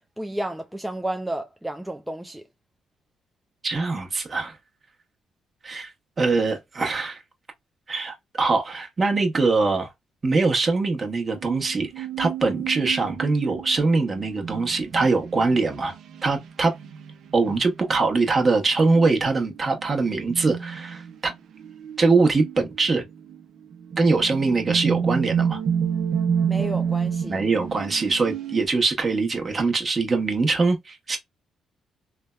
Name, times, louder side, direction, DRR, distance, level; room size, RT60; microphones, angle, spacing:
voice 1, 0.2-2.4 26.5-27.4, right 1 dB, 5° right, 0.4 m, -31 dB
voice 2, 3.6-4.6 5.6-5.9 6.2-7.2 7.9-9.9 10.2-15.9 16.2-16.7 17.3-21.3 22.0-23.0 24.0-25.6 27.3-31.2, right 3 dB, 35° right, 0.9 m, -23 dB
sound 1, 11.3-15.7 16.8-17.0 18.0-18.5 18.9-19.4 19.8-21.4 21.6-22.5 23.3-23.4 23.7-28.7, right 7 dB, 70° right, 0.5 m, -29 dB
3.3 x 2.1 x 2.2 m
cardioid pair, 90°, 0 cm